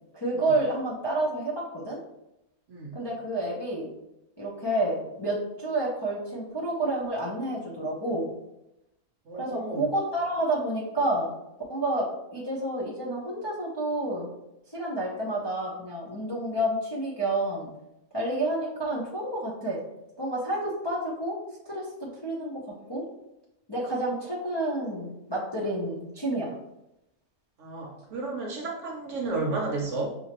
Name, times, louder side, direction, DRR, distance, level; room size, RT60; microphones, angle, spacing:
voice 1, 0.1-2.0 2.9-3.9 4.4-8.3 9.3-11.3 11.7-12.0 12.3-14.3 14.7-17.7 18.1-19.8 20.2-21.3 21.6-22.6 22.9-23.0 23.7-26.5, right 1 dB, 25° left, -7 dB, 0.6 m, -29 dB
voice 2, 2.7-3.0 9.3-9.9 27.6-30.1, right 3 dB, 60° right, 0 dB, 1.0 m, -32 dB
5.6 x 2.8 x 2.9 m, 0.88 s
omnidirectional pair, 1.6 m